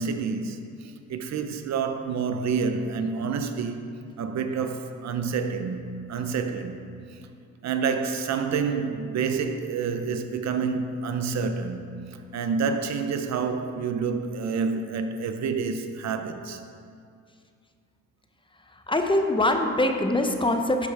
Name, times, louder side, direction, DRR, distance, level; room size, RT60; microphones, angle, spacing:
voice 1, 0.0-3.8 4.2-6.8 7.1-7.2 7.6-16.6, right 5 dB, 65° right, 0.7 m, -28 dB
voice 2, 18.9-20.9, left 1 dB, 15° left, 0.8 m, -23 dB
12.0 x 5.2 x 4.8 m
cardioid pair, 90°, 30 cm